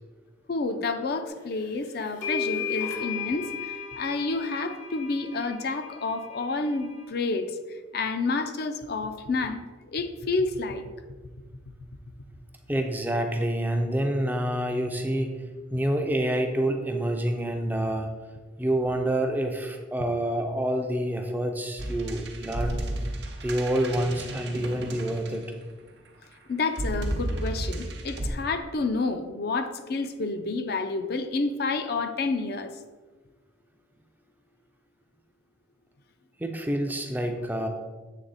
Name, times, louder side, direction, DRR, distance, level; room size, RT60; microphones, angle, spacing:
voice 1, 0.5-7.6 7.9-9.6 9.9-10.9 26.5-32.7, left 3 dB, 55° left, 7 dB, 0.4 m, -29 dB
sound 1, 1.6-1.7 2.2-7.0, left 6 dB, 85° left, 1.6 m, -35 dB
voice 2, 12.7-15.4 15.7-18.1 18.6-22.8 23.4-25.5 36.4-37.7, right 1 dB, 10° right, 4 dB, 0.4 m, -27 dB
sound 2, 21.8-25.8 26.7-28.3, right 1 dB, 60° right, 0.7 m, -33 dB
7.4 x 3.4 x 4.0 m, 1.3 s
head